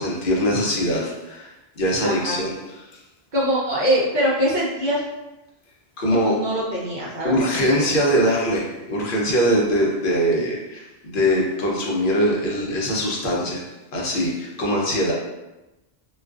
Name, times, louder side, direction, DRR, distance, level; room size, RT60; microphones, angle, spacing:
voice 1, 0.0-1.5 1.8-2.8 6.0-6.3 7.2-13.7 13.9-15.1, equal, 55° left, -3 dB, 0.7 m, -22 dB
voice 2, 2.0-2.4 3.3-5.0 6.1-7.9, equal, 50° right, -7 dB, 0.6 m, -23 dB
2.3 x 2.3 x 2.3 m, 1.0 s
omnidirectional pair, 1.2 m